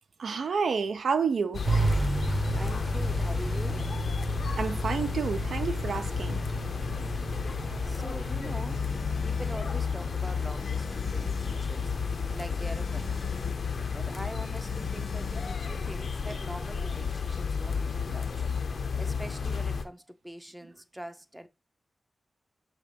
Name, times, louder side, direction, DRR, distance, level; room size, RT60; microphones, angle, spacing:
voice 1, 0.2-1.6 4.6-6.4, right 5 dB, 85° right, 0.6 m, -29 dB
sound 1, 1.5-19.9, left 5 dB, 65° left, 0.6 m, -32 dB
sound 2, 1.6-19.9, right 3 dB, 30° right, 0.9 m, -36 dB
voice 2, 2.5-3.9 7.8-8.8 9.2-13.4 13.9-18.5 19.0-21.5, right 1 dB, 5° right, 0.5 m, -43 dB
Telephone, 7.7-16.3, left 3 dB, 90° left, 1.1 m, -49 dB
6.5 x 3.0 x 5.1 m
wide cardioid pair, 145°, 0 cm